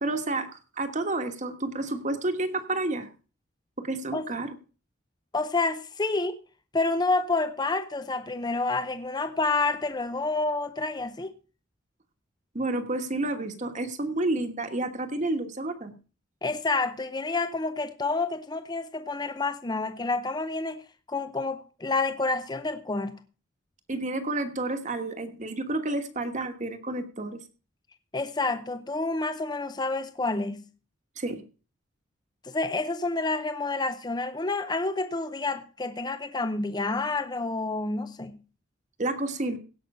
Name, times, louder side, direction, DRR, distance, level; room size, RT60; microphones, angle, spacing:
voice 1, 0.0-0.5 0.8-3.1 3.8-4.5 12.5-15.9 23.9-27.4 31.2-31.4 39.0-39.6, right 2 dB, 40° right, 1.3 m, -30 dB
voice 2, 5.3-6.4 6.7-11.3 16.4-20.8 21.1-23.2 28.1-30.6 32.4-38.4, left 3 dB, 20° left, 0.6 m, -29 dB
16.5 x 6.0 x 5.4 m
head